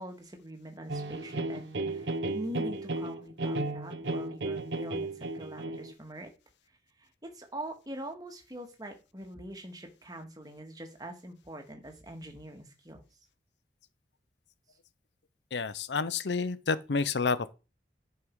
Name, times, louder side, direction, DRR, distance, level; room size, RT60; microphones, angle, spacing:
voice 1, 0.0-6.3 7.0-13.0, right 1 dB, 20° right, 1.8 m, -43 dB
sound 1, 0.9-5.9, right 2 dB, 90° right, 0.9 m, -34 dB
voice 2, 15.5-17.5, left 4 dB, 80° left, 0.7 m, -29 dB
11.0 x 5.8 x 4.7 m
head